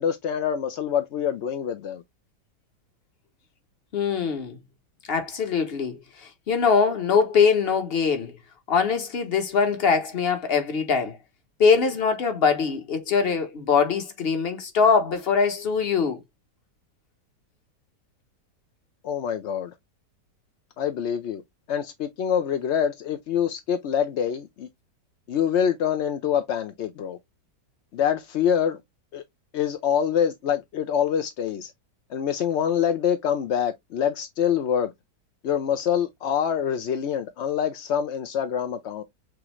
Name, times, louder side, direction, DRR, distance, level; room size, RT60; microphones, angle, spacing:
voice 1, 0.0-2.0 19.0-19.7 20.8-21.4 21.7-24.7 25.3-27.2 27.9-28.8 29.1-29.2 29.5-31.7 32.1-34.9 35.4-39.0, left 8 dB, 65° left, 0.6 m, -25 dB
voice 2, 3.9-4.6 5.1-8.3 8.7-11.2 11.6-16.2, left 5 dB, 40° left, 1.0 m, -22 dB
6.2 x 2.5 x 2.9 m
omnidirectional pair, 1.8 m